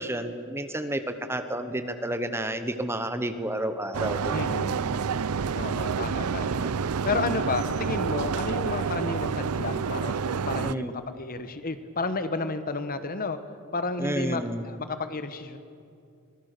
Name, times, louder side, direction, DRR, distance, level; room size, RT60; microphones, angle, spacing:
voice 1, 0.0-4.5 10.6-10.9 14.0-14.6, right 1 dB, 10° right, 10 dB, 0.9 m, -31 dB
sound 1, 3.9-10.7, right 5 dB, 80° right, 0.5 m, -28 dB
voice 2, 4.3-4.8 5.5-6.7 7.0-13.4 13.7-15.6, left 3 dB, 40° left, 11 dB, 1.1 m, -32 dB
23.5 x 18.0 x 6.7 m, 2.6 s
head